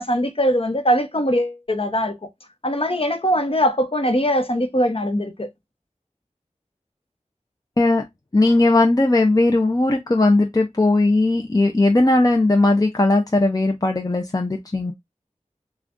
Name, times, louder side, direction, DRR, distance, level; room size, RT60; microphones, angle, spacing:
voice 1, 0.0-2.2 2.6-5.5, equal, 50° left, 0.9 m, -21 dB
voice 2, 8.3-14.9, left 2 dB, 30° left, 0.6 m, -18 dB
6.9 x 2.4 x 2.5 m
wide cardioid pair, 50°, 13 cm